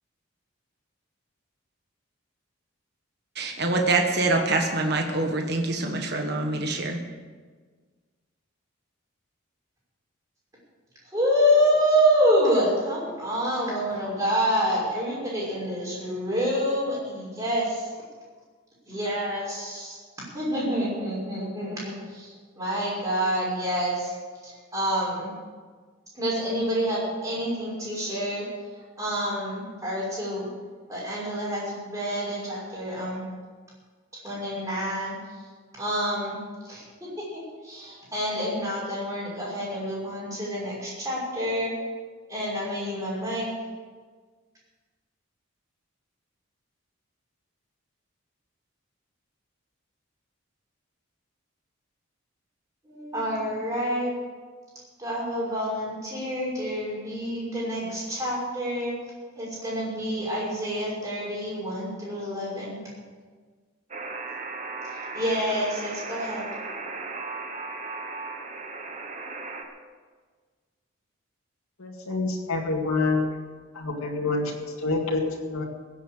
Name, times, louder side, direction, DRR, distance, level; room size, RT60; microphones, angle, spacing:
voice 1, 3.4-7.0, right 2 dB, 50° right, 3 dB, 1.4 m, -25 dB
voice 2, 11.1-17.9 18.9-20.0 20.3-24.1 24.4-25.3 26.1-28.4 29.0-30.5 30.9-33.2 34.2-35.2 35.8-36.4 36.6-36.8 37.6-41.7 42.3-43.5 52.8-54.1 55.0-58.9 59.4-62.8 65.1-66.4, equal, 15° right, -6 dB, 6.0 m, -27 dB
Alarm, 63.9-69.6, right 3 dB, 35° right, 1.3 m, -36 dB
voice 3, 71.8-73.3 73.7-75.6, left 3 dB, 90° left, -1 dB, 2.1 m, -27 dB
16.5 x 8.3 x 7.7 m, 1.5 s
head